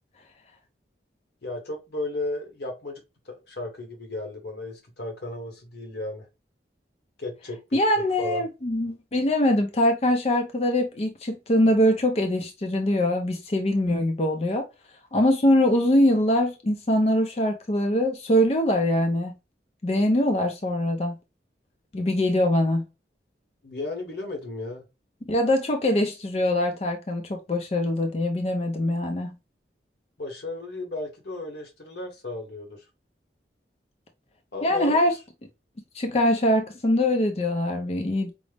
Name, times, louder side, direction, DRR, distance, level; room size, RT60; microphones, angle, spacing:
voice 1, 1.4-3.0 3.3-6.2 7.2-7.6 8.2-8.4 23.6-24.8 30.2-32.8 34.5-35.0, left 2 dB, 65° left, 1.0 m, -34 dB
voice 2, 7.7-14.7 15.1-19.4 19.8-21.2 21.9-22.8 25.2-29.4 34.6-35.2 35.9-38.3, left 1 dB, 35° left, 0.4 m, -23 dB
5.1 x 2.0 x 3.3 m
head